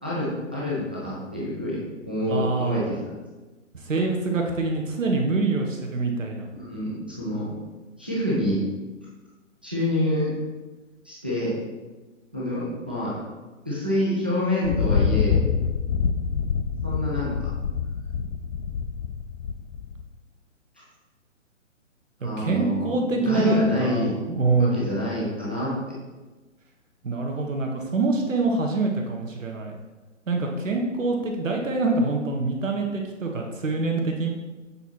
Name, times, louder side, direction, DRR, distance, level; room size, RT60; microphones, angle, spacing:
voice 1, 0.0-2.9 6.5-7.6 8.0-8.6 9.6-10.3 11.0-11.6 12.3-13.2 13.6-15.4 16.8-17.5 22.2-22.9 23.2-24.2 24.6-25.7, left 1 dB, 10° right, -7 dB, 0.3 m, -27 dB
voice 2, 2.3-2.8 3.7-6.5 22.2-24.8 27.0-29.8 30.3-34.3, right 3 dB, 80° right, 1 dB, 1.1 m, -25 dB
Thunder, 14.6-20.1, left 6 dB, 60° left, 0.5 m, -26 dB
7.0 x 4.1 x 4.4 m, 1.2 s
figure-of-eight pair, 130°, 38 cm